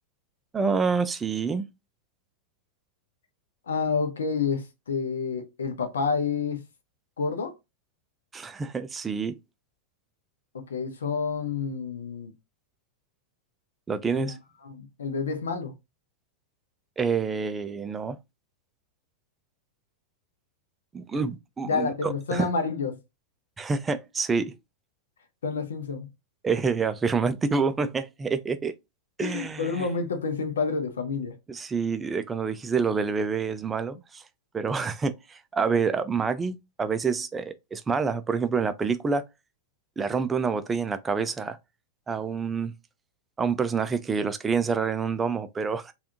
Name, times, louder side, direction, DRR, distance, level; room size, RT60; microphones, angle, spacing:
voice 1, 0.5-1.7 8.3-9.4 13.9-14.4 17.0-18.2 20.9-22.5 23.6-24.6 26.4-28.8 29.2-29.9 31.5-34.2 34.5-39.3 40.0-41.6 42.1-42.7 43.4-45.9, right 5 dB, 15° right, 0.4 m, -27 dB
voice 2, 3.7-6.6 7.2-7.5 10.5-12.3 14.1-14.4 14.6-15.7 21.7-23.0 25.4-26.1 29.2-31.4, left 5 dB, 65° left, 0.5 m, -29 dB
3.4 x 2.3 x 2.7 m
figure-of-eight pair, 90°, 0 cm